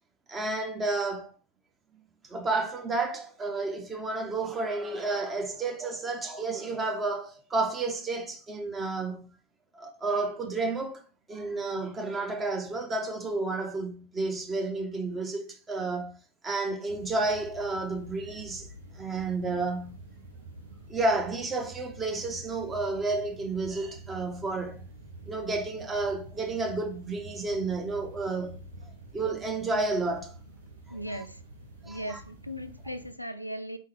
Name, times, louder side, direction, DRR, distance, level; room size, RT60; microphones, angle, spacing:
voice 1, 0.3-1.3 2.2-9.4 9.7-11.0 11.3-18.7 19.0-20.0 20.9-24.8 25.3-28.6 29.1-30.4 30.9-31.0 31.8-32.2, right 3 dB, 15° right, 0.9 m, -31 dB
sound 1, 16.9-33.1, right 1 dB, 70° right, 1.0 m, -48 dB
voice 2, 30.9-31.4 31.8-33.8, equal, 90° left, 0.4 m, -38 dB
4.1 x 3.8 x 3.2 m
figure-of-eight pair, 90°, 0 cm